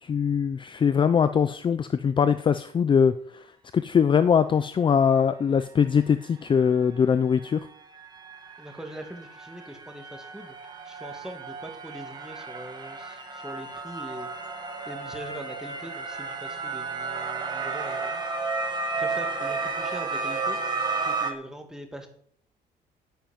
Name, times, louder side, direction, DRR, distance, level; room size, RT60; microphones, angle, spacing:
voice 1, 0.0-3.4 3.7-7.6, left 7 dB, 30° left, 12 dB, 0.6 m, -22 dB
sound 1, 6.8-6.9 7.2-21.3, right 4 dB, 25° right, 2.3 m, -33 dB
voice 2, 8.6-10.5 10.8-14.3 14.8-18.2 18.9-20.6 21.0-22.1, right 1 dB, 5° right, 4 dB, 2.4 m, -42 dB
10.5 x 9.3 x 9.0 m, 0.64 s
cardioid pair, 165°, 17 cm